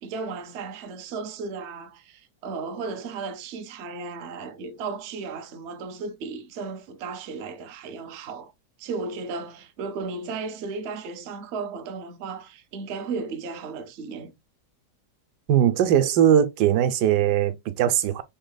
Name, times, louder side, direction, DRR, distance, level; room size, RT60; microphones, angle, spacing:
voice 1, 0.0-8.5 8.8-14.3, right 4 dB, 60° right, 0.8 m, -35 dB
voice 2, 15.5-18.2, right 10 dB, 85° right, 1.2 m, -20 dB
5.5 x 3.2 x 2.2 m
omnidirectional pair, 1.8 m